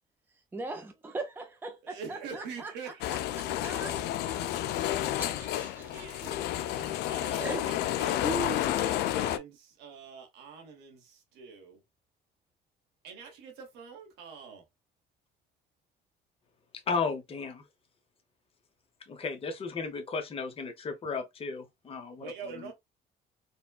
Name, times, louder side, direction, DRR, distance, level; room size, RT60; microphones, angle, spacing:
voice 1, 0.5-3.9 5.2-6.3 7.4-8.0 8.2-8.7, right 3 dB, 10° right, 0.5 m, -39 dB
voice 2, 1.8-5.3 5.7-11.8 13.0-14.6 22.2-22.7, right 5 dB, 90° right, 1.4 m, -46 dB
sound 1, 3.0-9.4, left 13 dB, 80° left, 0.4 m, -31 dB
voice 3, 16.9-17.6 19.1-22.3, left 4 dB, 35° left, 0.9 m, -34 dB
4.2 x 2.2 x 2.4 m
cardioid pair, 110°, 17 cm